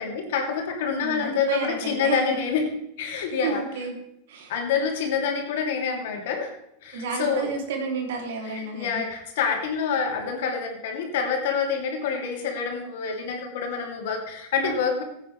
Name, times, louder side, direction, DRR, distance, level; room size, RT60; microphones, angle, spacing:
voice 1, 0.0-2.7 3.0-3.6 4.5-6.5 6.8-7.5 8.4-15.0, left 6 dB, 70° left, 1 dB, 2.8 m, -27 dB
voice 2, 1.0-2.2 3.3-4.0 4.3-4.5 6.9-9.0, right 4 dB, 70° right, 2 dB, 3.0 m, -31 dB
15.5 x 8.7 x 3.3 m, 0.82 s
hypercardioid pair, 95°, 0 cm